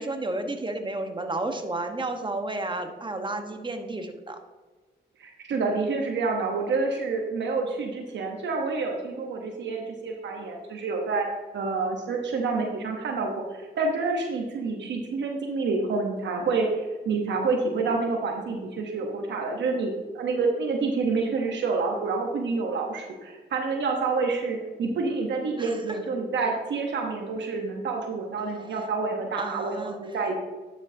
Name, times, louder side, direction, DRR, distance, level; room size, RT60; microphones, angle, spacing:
voice 1, 0.0-4.4 25.6-26.0 29.4-30.0, right 2 dB, 25° right, 5 dB, 1.2 m, -32 dB
voice 2, 5.2-11.3 11.5-30.4, right 4 dB, 85° right, 2 dB, 1.0 m, -28 dB
11.0 x 6.3 x 2.7 m, 1.3 s
cardioid pair, 60°, 18 cm